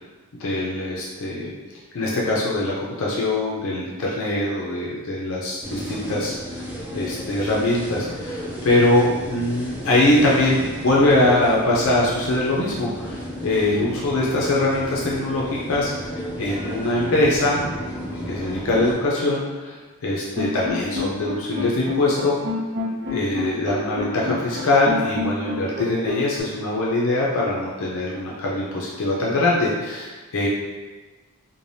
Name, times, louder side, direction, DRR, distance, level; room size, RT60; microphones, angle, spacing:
voice 1, 0.4-1.5 1.9-6.7 6.9-17.6 18.3-22.4 23.1-30.5, left 2 dB, 60° left, -4 dB, 0.5 m, -22 dB
sound 1, 5.6-18.9, equal, 5° right, 0.3 m, -33 dB
sound 2, 20.4-26.4, left 3 dB, 55° right, 0.6 m, -29 dB
3.2 x 2.1 x 2.6 m, 1.3 s
head